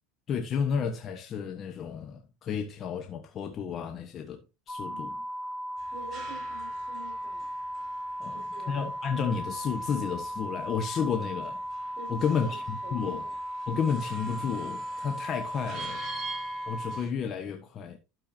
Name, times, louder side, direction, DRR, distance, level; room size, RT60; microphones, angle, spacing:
voice 1, 0.3-5.2 8.2-8.4 8.7-13.2 13.7-16.0 16.7-18.0, left 6 dB, 40° left, 1.3 m, -32 dB
sound 1, 4.7-17.0, equal, 15° left, 1.1 m, -36 dB
voice 2, 4.9-5.2 5.9-8.8 11.9-12.6 12.8-13.3, right 4 dB, 55° right, 5.2 m, -48 dB
sound 2, 5.8-17.1, right 3 dB, 25° right, 4.2 m, -47 dB
12.0 x 6.8 x 2.8 m
supercardioid pair, 115°, 0 cm